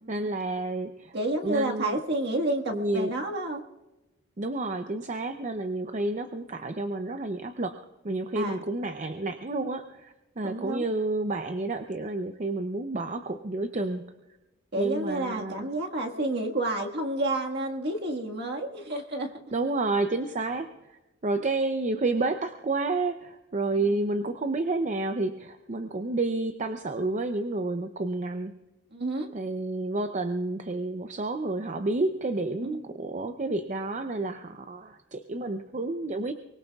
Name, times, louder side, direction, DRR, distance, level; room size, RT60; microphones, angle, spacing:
voice 1, 0.1-1.1 1.4-2.0 2.7-3.1 4.4-7.8 8.0-14.0 14.7-15.7 19.5-28.5 29.3-36.3, right 2 dB, 35° right, 7 dB, 0.6 m, -30 dB
voice 2, 1.1-3.6 8.3-8.6 10.4-10.9 14.7-19.3 23.8-24.0 28.9-29.3 32.6-32.9, right 1 dB, 55° right, 1 dB, 1.7 m, -30 dB
24.0 x 20.5 x 2.4 m, 1.1 s
head